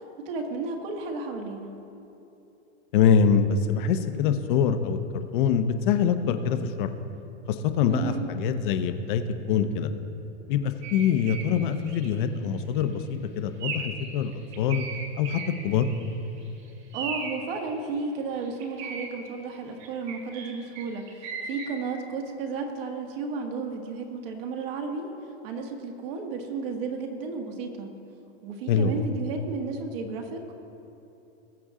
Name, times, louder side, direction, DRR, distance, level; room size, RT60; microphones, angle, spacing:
voice 1, 0.2-1.7 7.9-8.2 16.9-25.1 25.4-27.9 28.4-30.5, right 4 dB, 55° right, 3 dB, 1.6 m, -33 dB
voice 2, 2.9-6.9 7.5-9.9 10.5-14.3 14.6-14.8 15.2-15.9 28.7-29.0, left 7 dB, 50° left, 9 dB, 0.8 m, -24 dB
sound 1, 10.8-11.5 11.8-12.1 12.6-12.8 13.6-14.0 14.3-16.1 16.4-16.5 16.9-17.4 18.4-19.1 19.8-21.7, right 5 dB, 35° right, 1.7 m, -37 dB
20.0 x 6.9 x 3.7 m, 2.9 s
supercardioid pair, 160°, 34 cm